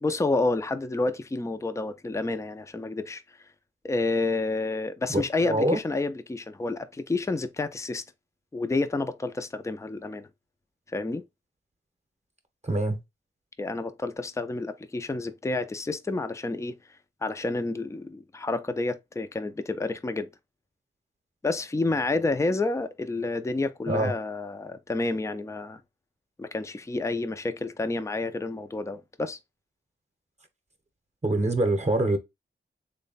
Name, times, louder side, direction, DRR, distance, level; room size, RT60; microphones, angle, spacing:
voice 1, 0.0-3.2 3.8-8.0 8.5-10.3 10.9-11.2 13.6-16.8 17.2-20.3 21.4-25.8 26.4-29.4, left 3 dB, 15° left, 0.4 m, -29 dB
voice 2, 5.1-5.8 12.6-13.0 23.9-24.1 31.2-32.2, right 1 dB, 35° right, 0.8 m, -25 dB
3.2 x 2.1 x 3.9 m
cardioid pair, 55°, 21 cm